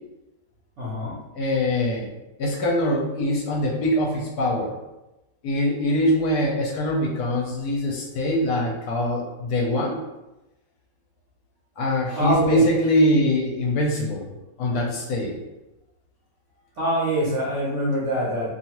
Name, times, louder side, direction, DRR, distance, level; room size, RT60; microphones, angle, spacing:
voice 1, 0.8-1.2 12.1-12.7 16.8-18.5, right 1 dB, 60° right, -7 dB, 0.8 m, -24 dB
voice 2, 1.3-2.1 2.4-4.7 5.4-10.0 11.8-14.3 14.6-15.4, left 1 dB, 70° left, -1 dB, 1.0 m, -23 dB
2.7 x 2.3 x 2.9 m, 1.0 s
omnidirectional pair, 1.9 m